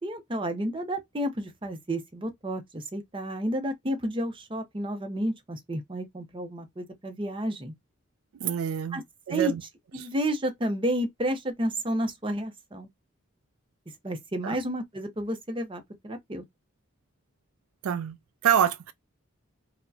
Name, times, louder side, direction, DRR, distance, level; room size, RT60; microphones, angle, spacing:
voice 1, 0.0-7.7 8.9-9.0 9.3-9.5 9.9-12.9 14.0-16.4, right 1 dB, 25° right, 0.6 m, -31 dB
voice 2, 8.4-9.0 9.3-9.6 10.0-10.1 14.4-14.6 17.8-18.2 18.4-18.9, right 9 dB, 85° right, 0.3 m, -26 dB
4.4 x 2.1 x 2.7 m
head